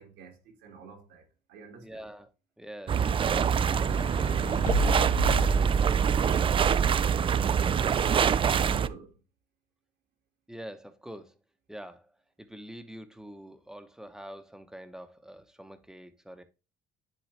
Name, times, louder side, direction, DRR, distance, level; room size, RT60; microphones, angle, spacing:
voice 1, 0.0-2.0 4.6-7.4 7.8-9.1, right 5 dB, 80° right, 2.2 m, -48 dB
voice 2, 1.8-2.3 2.6-3.9 10.5-11.4 11.7-16.4, equal, 5° right, 1.0 m, -46 dB
sound 1, 2.9-8.9, right 7 dB, 30° right, 0.4 m, -24 dB
sound 2, 3.5-6.2 7.1-8.1, left 7 dB, 50° left, 0.7 m, -36 dB
10.5 x 3.9 x 3.3 m
cardioid pair, 110°, 17 cm